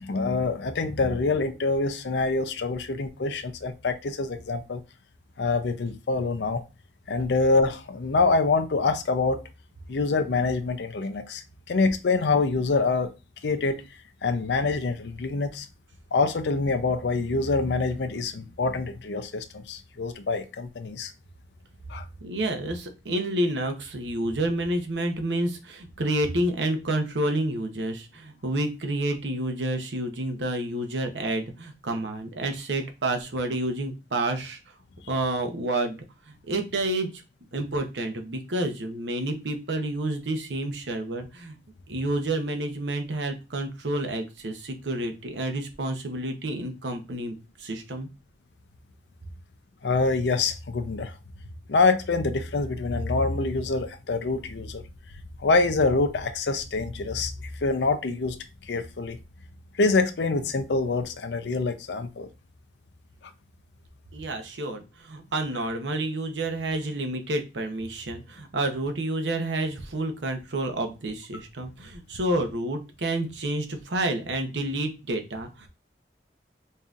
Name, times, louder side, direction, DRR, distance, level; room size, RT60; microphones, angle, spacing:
voice 1, 0.0-4.8 5.4-6.6 7.1-9.4 9.9-13.1 13.4-13.8 14.2-15.7 16.1-21.1 21.9-22.0 49.8-51.1 51.7-54.8 55.4-58.4 58.6-59.2 59.8-62.3, left 3 dB, 80° left, 0.5 m, -25 dB
voice 2, 22.2-34.6 35.1-36.0 36.3-37.2 37.5-41.6 41.9-48.1 64.1-75.7, right 1 dB, 85° right, 0.8 m, -29 dB
5.3 x 2.7 x 2.4 m
head